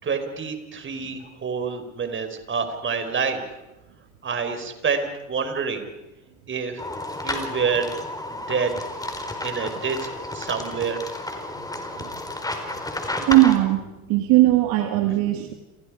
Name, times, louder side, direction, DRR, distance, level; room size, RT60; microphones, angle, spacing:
voice 1, 0.0-3.4 4.2-5.9 6.5-6.8 7.2-7.9 8.3-8.7 9.4-11.0, right 5 dB, 30° right, 7 dB, 4.9 m, -27 dB
sound 1, 6.8-13.6, left 2 dB, 10° left, 4.4 m, -32 dB
voice 2, 13.3-13.8 14.1-15.5, right 16 dB, 55° right, 6 dB, 2.1 m, -18 dB
30.0 x 28.0 x 5.0 m, 1.0 s
hypercardioid pair, 80°, 42 cm